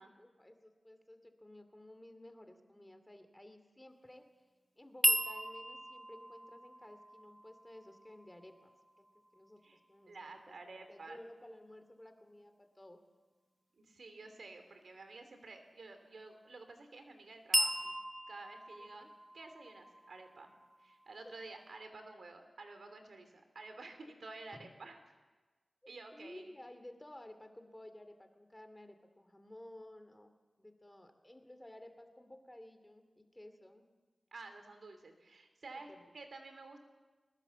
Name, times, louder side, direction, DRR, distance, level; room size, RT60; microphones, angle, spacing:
voice 1, 0.0-4.3 4.8-9.1 9.3-13.0 18.8-19.1 21.2-21.4 24.5-24.6 26.1-30.3 30.6-33.8 35.7-36.0, left 1 dB, 20° left, 8 dB, 2.5 m, -55 dB
sound 1, 5.0-9.1 17.5-21.3, equal, 10° right, 0.9 m, -37 dB
voice 2, 10.1-11.2 13.8-17.9 18.3-19.1 19.3-20.5 20.8-25.0 25.9-26.5 34.3-36.8, right 3 dB, 80° right, 7 dB, 3.0 m, -51 dB
21.0 x 20.0 x 7.1 m, 1.3 s
cardioid pair, 55°, 0 cm